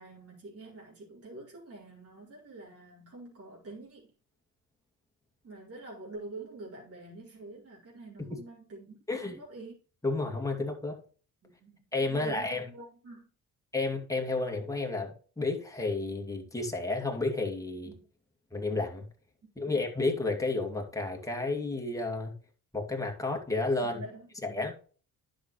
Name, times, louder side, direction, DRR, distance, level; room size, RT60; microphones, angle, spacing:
voice 1, 0.0-4.1 5.4-9.8 11.4-13.3 17.8-18.0 23.8-24.6, right 2 dB, 45° right, 4.4 m, -47 dB
voice 2, 9.1-9.4 10.0-11.0 11.9-12.7 13.7-17.9 18.5-19.0 19.6-22.3 22.7-24.0 24.4-24.7, left 3 dB, 10° left, 2.4 m, -31 dB
10.5 x 6.5 x 3.2 m
cardioid pair, 100°, 34 cm